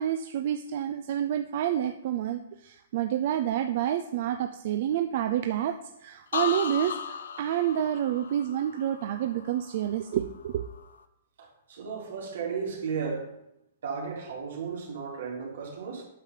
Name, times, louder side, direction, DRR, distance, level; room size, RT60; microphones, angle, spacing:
voice 1, 0.0-5.8 6.0-10.6, right 10 dB, 50° right, 7 dB, 0.4 m, -29 dB
sound 1, 6.3-10.1 10.5-11.0, left 7 dB, 80° left, 0.7 m, -36 dB
voice 2, 11.4-13.3 13.8-16.0, right 5 dB, 75° right, -2 dB, 3.2 m, -34 dB
8.8 x 6.5 x 3.9 m, 0.84 s
hypercardioid pair, 160°, 0 cm